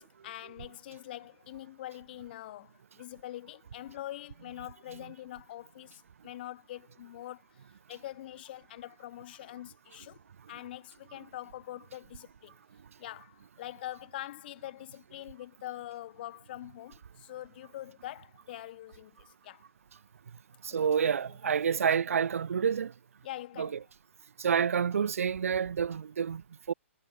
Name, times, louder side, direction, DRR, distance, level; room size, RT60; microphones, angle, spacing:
voice 1, 0.0-10.2 10.5-12.6 13.0-19.7 20.8-21.1 23.2-23.8, left 14 dB, 45° left, 1.2 m, -44 dB
voice 2, 20.6-22.9 23.6-23.8 24.4-26.7, right 7 dB, 85° right, 0.5 m, -28 dB
hypercardioid pair, 150°, 7 cm